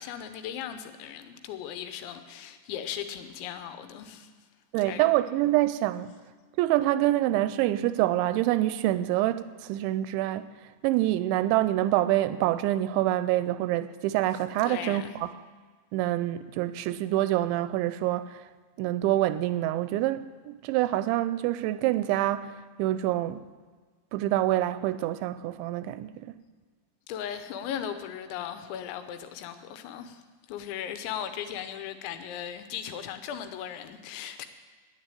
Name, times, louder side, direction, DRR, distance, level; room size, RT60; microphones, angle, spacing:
voice 1, 0.0-4.3 4.9-5.1 14.6-15.2 27.1-30.2 30.5-34.5, left 9 dB, 80° left, 3.1 m, -37 dB
voice 2, 4.7-6.1 6.6-10.5 10.8-15.3 15.9-18.4 18.8-23.4 24.1-26.3, right 14 dB, 85° right, 2.8 m, -26 dB
10.5 x 10.0 x 9.1 m
omnidirectional pair, 5.4 m